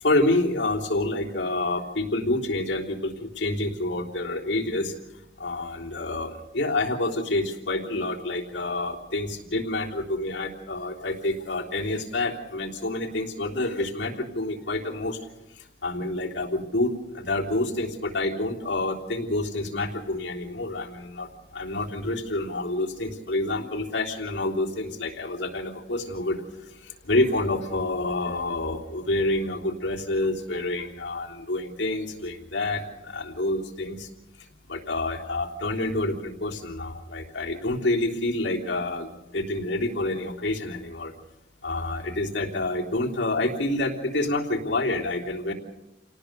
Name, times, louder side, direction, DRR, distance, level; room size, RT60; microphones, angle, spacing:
voice 1, 0.0-4.9 5.4-15.2 15.8-21.3 21.5-26.4 26.8-34.1 34.7-41.1 41.6-45.5, left 2 dB, 85° left, -1 dB, 3.4 m, -28 dB
28.5 x 18.5 x 6.8 m, 0.98 s
head